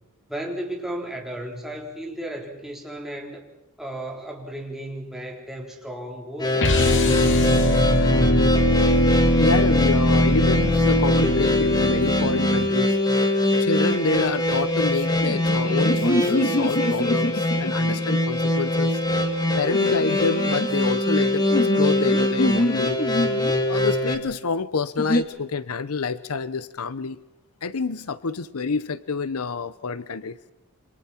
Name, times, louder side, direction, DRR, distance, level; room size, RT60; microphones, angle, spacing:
voice 1, 0.3-3.4 3.8-7.8, right 1 dB, ahead, 0 dB, 4.0 m, -35 dB
sound 1, 6.4-24.2, left 1 dB, 20° left, 2.4 m, -23 dB
sound 2, 6.6-12.7, left 1 dB, 60° left, 2.3 m, -21 dB
voice 2, 9.4-13.0 13.6-19.0 19.6-21.5 21.8-23.0 23.7-27.2 27.6-30.4, left 4 dB, 75° left, 15 dB, 0.8 m, -27 dB
sound 3, 15.1-18.1 19.6-20.7 21.5-23.6 25.0-25.2, left 1 dB, 40° left, 2.0 m, -26 dB
28.0 x 25.5 x 4.4 m, 0.97 s
head